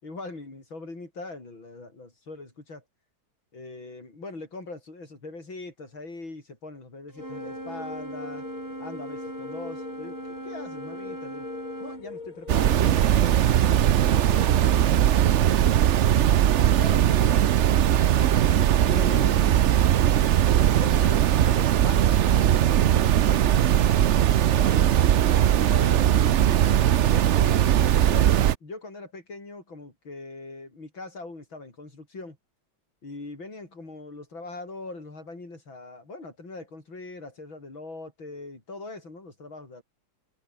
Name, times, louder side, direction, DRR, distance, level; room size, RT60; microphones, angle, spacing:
voice 1, 0.0-2.8 3.5-8.5 8.8-10.2 10.4-11.5 11.8-16.3 16.8-18.2 18.8-19.5 20.4-23.8 24.5-24.9 25.5-26.6 27.1-28.3 28.6-32.4 33.0-39.8, left 3 dB, 80° left, 7.4 m, -41 dB
Wind instrument woodwind instrument, 7.1-12.1, right 1 dB, 10° right, 3.1 m, -38 dB
sound 1, 7.2-12.9, left 4 dB, 45° left, 2.8 m, -42 dB
sound 2, 12.5-28.6, right 11 dB, 85° right, 0.6 m, -20 dB
omnidirectional pair, 2.1 m